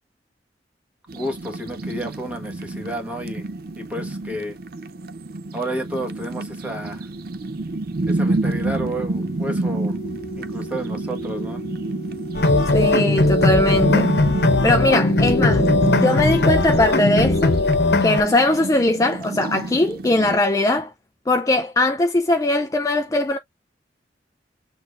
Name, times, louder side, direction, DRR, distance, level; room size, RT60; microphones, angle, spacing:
voice 1, 1.1-3.5 3.8-4.6 5.5-7.1 8.1-10.0 10.4-11.6, right 1 dB, 10° right, 1.3 m, -31 dB
sound 1, 1.1-20.4, right 2 dB, 55° right, 0.5 m, -28 dB
sound 2, 9.1-18.2, right 1 dB, 45° left, 1.5 m, -35 dB
sound 3, 12.3-18.2, left 2 dB, 65° left, 1.0 m, -19 dB
voice 2, 12.7-14.1 14.6-15.7 16.0-17.6 18.0-20.9 21.3-23.4, left 2 dB, 20° left, 0.4 m, -20 dB
6.4 x 3.3 x 2.4 m
head